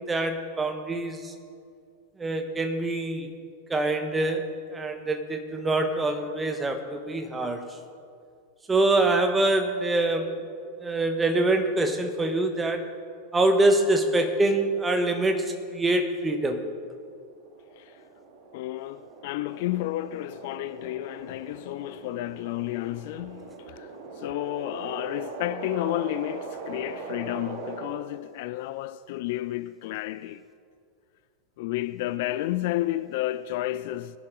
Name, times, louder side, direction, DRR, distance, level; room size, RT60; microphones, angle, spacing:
voice 1, 0.1-1.3 2.2-3.3 3.7-7.7 8.7-10.4 10.8-12.9 13.3-16.6, right 2 dB, 15° right, 1.4 m, -25 dB
sound 1, 17.1-27.9, right 3 dB, 50° right, 1.9 m, -41 dB
voice 2, 18.5-30.4 31.6-34.2, left 15 dB, 50° left, 0.3 m, -31 dB
20.5 x 11.0 x 3.8 m
figure-of-eight pair, 90°, 0 cm